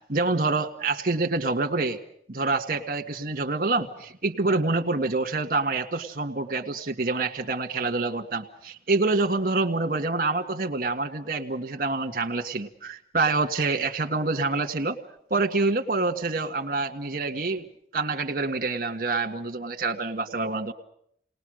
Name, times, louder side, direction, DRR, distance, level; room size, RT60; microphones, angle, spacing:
voice 1, 0.1-2.0 2.3-15.0 15.3-17.6 17.9-20.7, right 3 dB, 50° right, 6 dB, 1.8 m, -26 dB
30.0 x 20.0 x 6.5 m, 0.67 s
head